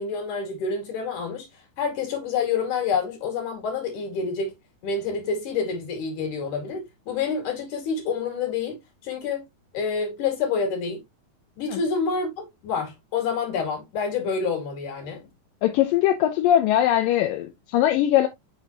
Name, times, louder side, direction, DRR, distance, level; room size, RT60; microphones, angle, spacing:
voice 1, 0.0-1.5 1.8-4.5 4.8-9.4 9.7-11.0 11.6-15.2, left 5 dB, 70° left, 3.8 m, -28 dB
voice 2, 15.6-18.3, left 11 dB, 85° left, 2.5 m, -21 dB
6.4 x 6.0 x 2.7 m
omnidirectional pair, 3.9 m